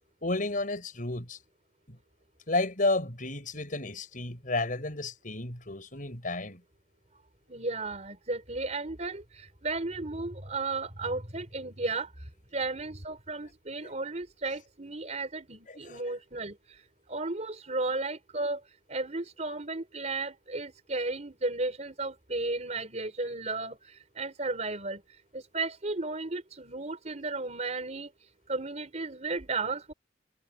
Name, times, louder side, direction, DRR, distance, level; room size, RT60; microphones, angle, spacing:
voice 1, 0.2-1.4 1.9-2.0 2.5-6.6 13.8-13.9 15.9-16.0, left 2 dB, 45° left, 6.1 m, -32 dB
voice 2, 7.5-18.6 18.9-28.1 28.5-29.9, right 3 dB, 40° right, 4.3 m, -34 dB
head